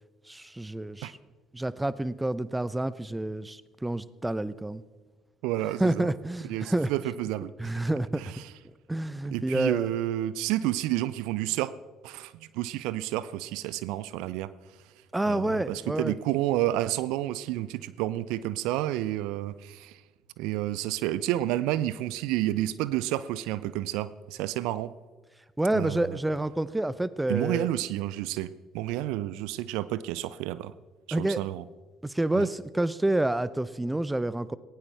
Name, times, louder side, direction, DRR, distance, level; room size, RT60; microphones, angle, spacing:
voice 1, 0.3-1.2 1.5-4.8 5.8-6.9 7.6-8.2 8.9-9.9 15.1-16.2 25.6-27.7 31.1-31.4 32.0-34.6, right 1 dB, 10° right, 17 dB, 0.7 m, -28 dB
voice 2, 5.4-6.1 6.4-7.5 8.2-8.5 9.3-11.7 12.0-14.5 15.2-20.0 20.4-24.9 25.7-26.2 27.3-30.7 31.2-31.6 32.3-32.5, right 14 dB, 65° right, 17 dB, 0.4 m, -30 dB
18.5 x 17.5 x 3.4 m, 1.3 s
figure-of-eight pair, 50°, 0 cm